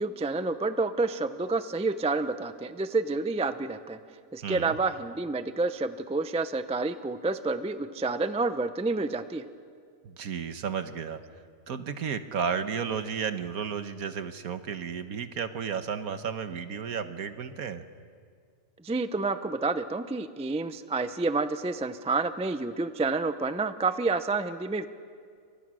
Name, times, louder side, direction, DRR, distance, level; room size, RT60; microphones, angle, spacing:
voice 1, 0.0-4.0 4.3-9.4 18.8-24.9, right 3 dB, 10° right, 10 dB, 0.4 m, -29 dB
voice 2, 4.4-4.8 10.0-11.2 11.7-17.8, right 7 dB, 70° right, 10 dB, 1.5 m, -33 dB
29.0 x 25.0 x 6.3 m, 2.1 s
omnidirectional pair, 1.6 m